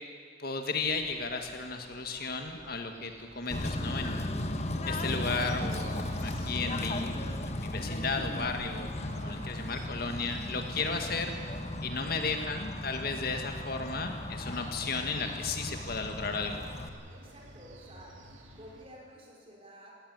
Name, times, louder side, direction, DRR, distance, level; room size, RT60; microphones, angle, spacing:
voice 1, 0.4-4.3 4.9-11.3 11.8-16.6, left 4 dB, 50° left, 5 dB, 1.8 m, -34 dB
sound 1, 0.8-18.9, right 1 dB, 75° right, 2.5 m, -53 dB
Bird / Train, 3.5-16.9, left 1 dB, 35° left, 1.3 m, -36 dB
voice 2, 9.1-9.7 17.1-18.2 18.5-19.9, equal, 30° right, -1 dB, 4.8 m, -51 dB
18.0 x 17.0 x 9.6 m, 2.1 s
head